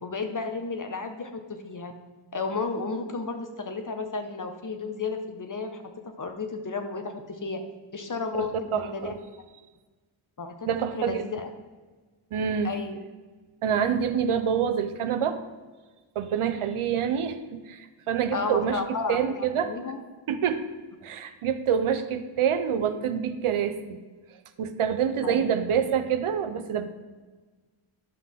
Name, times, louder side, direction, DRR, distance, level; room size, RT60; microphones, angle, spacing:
voice 1, 0.0-1.9 2.3-7.6 7.9-9.1 10.4-10.7 10.9-11.5 12.6-13.0 18.3-20.0 25.2-25.5, left 4 dB, 40° left, 6 dB, 1.1 m, -33 dB
voice 2, 8.3-9.1 10.7-11.2 12.3-12.7 13.6-15.4 16.2-19.7 20.3-20.7 21.0-24.0 24.6-26.9, right 8 dB, 80° right, 9 dB, 0.8 m, -26 dB
11.0 x 5.8 x 3.6 m, 1.3 s
cardioid pair, 70°, 50 cm